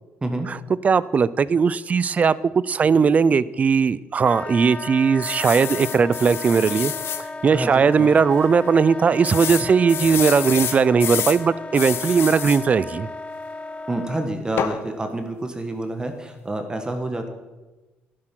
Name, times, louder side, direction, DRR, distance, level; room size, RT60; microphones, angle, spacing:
voice 1, 0.8-6.9 7.4-13.1, right 5 dB, 35° right, 19 dB, 0.5 m, -18 dB
Wind instrument woodwind instrument, 4.2-14.3, left 2 dB, 25° left, 0.7 m, -35 dB
sound 1, 5.2-7.2 7.8-7.9 8.1-8.2 9.2-11.4 11.7-12.6 14.6-14.8, left 9 dB, 60° left, 0.9 m, -28 dB
voice 2, 7.5-8.1 13.9-17.3, right 2 dB, 20° right, 6 dB, 1.4 m, -28 dB
11.5 x 11.0 x 6.0 m, 1.2 s
cardioid pair, 105°, 4 cm